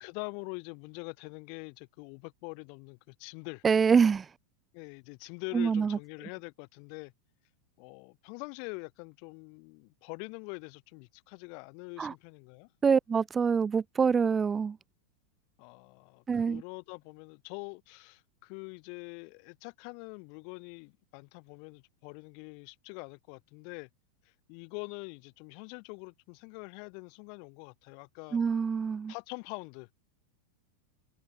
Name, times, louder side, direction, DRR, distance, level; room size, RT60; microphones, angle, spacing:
voice 1, 0.0-3.6 4.7-7.1 7.8-12.7 15.6-23.9 24.3-28.4 29.1-29.9, left 40 dB or more, 45° left, 3.7 m, -44 dB
voice 2, 3.6-4.3 5.5-6.0 12.0-12.1 12.8-14.8 16.3-16.6 28.3-29.1, right 6 dB, 20° right, 0.5 m, -25 dB
figure-of-eight pair, 90°, 0 cm